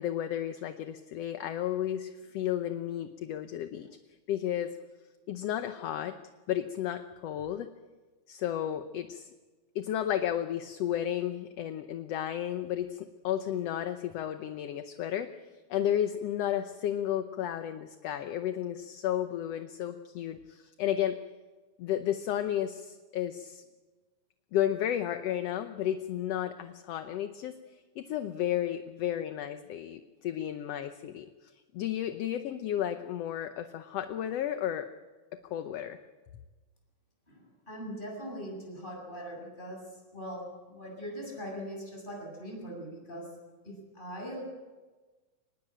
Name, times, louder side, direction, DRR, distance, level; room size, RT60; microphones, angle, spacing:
voice 1, 0.0-3.9 4.3-4.7 5.3-6.2 6.5-7.7 8.3-9.3 9.8-15.3 15.7-21.2 21.8-23.6 24.5-34.9 35.3-36.0, left 11 dB, 65° left, 8 dB, 1.8 m, -33 dB
voice 2, 37.3-43.3 43.6-44.4, equal, 15° left, 0 dB, 7.5 m, -41 dB
25.0 x 19.5 x 8.9 m, 1.3 s
omnidirectional pair, 3.4 m